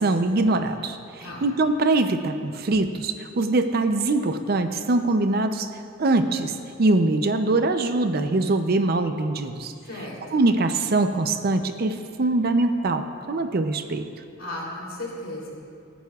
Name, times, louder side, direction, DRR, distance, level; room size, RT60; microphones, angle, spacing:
voice 1, 0.0-5.7 6.0-9.7 10.3-14.1, right 2 dB, 45° right, 8 dB, 0.5 m, -23 dB
voice 2, 1.2-1.5 9.8-10.5 14.4-15.5, left 1 dB, 70° left, -4 dB, 3.1 m, -35 dB
23.0 x 9.2 x 2.4 m, 2.4 s
head